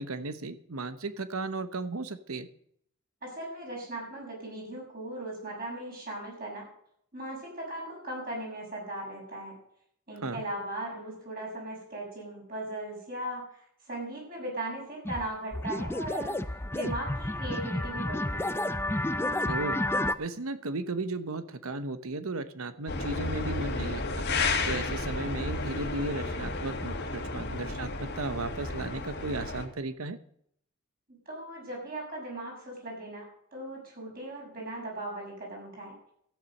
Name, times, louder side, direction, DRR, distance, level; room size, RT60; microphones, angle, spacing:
voice 1, 0.0-2.5 10.2-10.4 19.4-19.8 20.2-24.3 24.6-30.2, right 3 dB, 80° right, 12 dB, 1.0 m, -35 dB
voice 2, 3.2-6.6 7.1-9.5 10.1-16.3 16.7-18.5 31.1-33.2 33.5-35.9, right 1 dB, 45° right, -2 dB, 6.8 m, -38 dB
sound 1, 15.1-15.3 15.5-20.2, left 1 dB, 10° left, 0.5 m, -30 dB
sound 2, 22.9-29.7, left 3 dB, 50° left, 1.9 m, -32 dB
13.0 x 10.0 x 6.5 m, 0.69 s
head